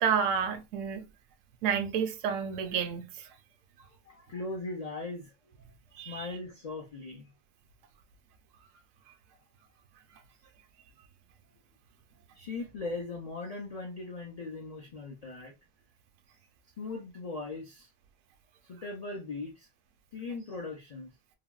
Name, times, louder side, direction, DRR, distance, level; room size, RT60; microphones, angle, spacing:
voice 1, 0.0-1.1 1.6-3.3 6.0-6.3, right 7 dB, 75° right, 0.9 m, -30 dB
voice 2, 3.8-5.3 6.0-7.3 12.3-15.5 16.8-17.9 18.7-19.7 20.1-21.1, left 3 dB, 55° left, 0.4 m, -39 dB
3.4 x 2.2 x 2.3 m
omnidirectional pair, 1.4 m